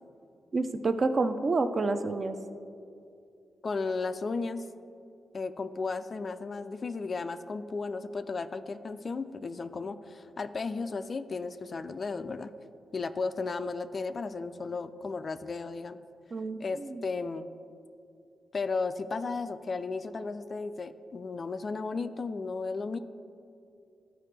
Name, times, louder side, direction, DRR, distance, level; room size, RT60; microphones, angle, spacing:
voice 1, 0.5-2.4 16.3-17.0, right 3 dB, 35° right, 9 dB, 0.4 m, -29 dB
voice 2, 3.6-4.6 5.3-12.5 12.9-16.0 16.6-17.5 18.5-23.0, left 4 dB, 35° left, 10 dB, 0.3 m, -34 dB
13.5 x 4.9 x 3.3 m, 2.6 s
cardioid pair, 125°, 0 cm